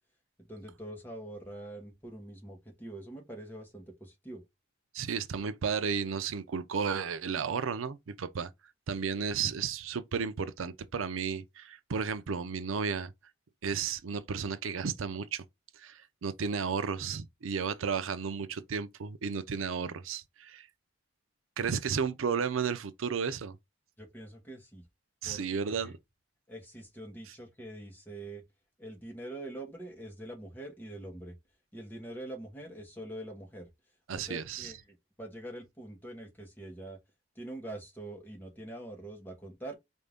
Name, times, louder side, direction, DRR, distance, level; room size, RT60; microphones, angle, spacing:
voice 1, 0.5-4.4 24.0-24.8 25.2-25.9 26.5-28.4 28.8-31.3 31.7-33.7 34.1-37.0 37.3-39.7, right 1 dB, 10° left, 1.2 m, -44 dB
voice 2, 4.9-8.5 8.9-13.1 13.6-15.4 15.8-20.7 21.6-23.5 25.2-26.0 34.1-34.7, right 6 dB, 85° right, 0.5 m, -33 dB
4.3 x 2.6 x 3.4 m
head